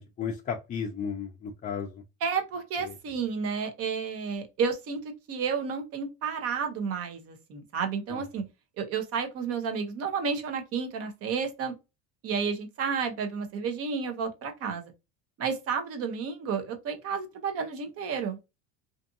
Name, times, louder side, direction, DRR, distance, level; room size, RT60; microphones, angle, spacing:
voice 1, 0.0-2.0 2.8-2.9 8.1-8.2, left 6 dB, 25° left, 0.4 m, -34 dB
voice 2, 2.2-5.0 5.3-8.4 8.8-11.7 12.2-14.9 15.4-18.4, right 6 dB, 50° right, 0.8 m, -31 dB
2.6 x 2.5 x 2.5 m
supercardioid pair, 115°, 31 cm